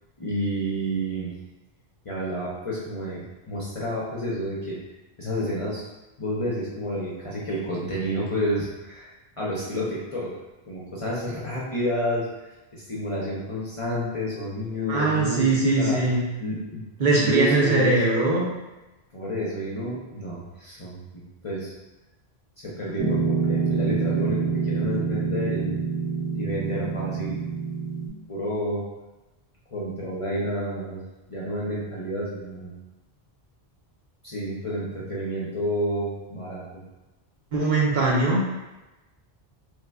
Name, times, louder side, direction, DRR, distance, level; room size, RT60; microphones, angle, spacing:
voice 1, 0.2-1.3 2.0-4.8 5.2-5.8 6.2-9.1 9.4-10.3 10.7-12.3 12.7-16.0 16.4-16.8 17.2-18.0 19.1-21.0 21.4-21.7 22.6-25.7 26.3-27.4 28.3-28.8 29.7-31.0 31.3-32.7 34.2-36.8, equal, 40° left, -7 dB, 0.5 m, -30 dB
voice 2, 14.9-16.2 17.0-18.5 37.5-38.4, right 3 dB, 55° right, -4 dB, 0.7 m, -21 dB
Piano, 23.0-28.1, right 5 dB, 80° right, 1.2 m, -26 dB
3.2 x 2.1 x 3.4 m, 1.1 s
omnidirectional pair, 1.1 m